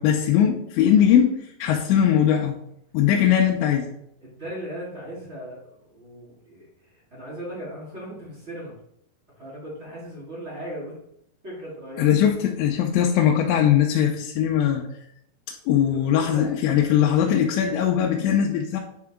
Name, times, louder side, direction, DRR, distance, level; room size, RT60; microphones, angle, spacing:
voice 1, 0.0-2.6 2.9-3.9 12.0-14.8 15.7-18.8, left 9 dB, 90° left, 0 dB, 2.9 m, -20 dB
voice 2, 4.2-8.7 9.4-11.0 11.4-12.1 15.9-16.0 16.3-16.5, equal, 30° right, -7 dB, 1.3 m, -37 dB
9.6 x 3.7 x 3.6 m, 0.75 s
omnidirectional pair, 5.1 m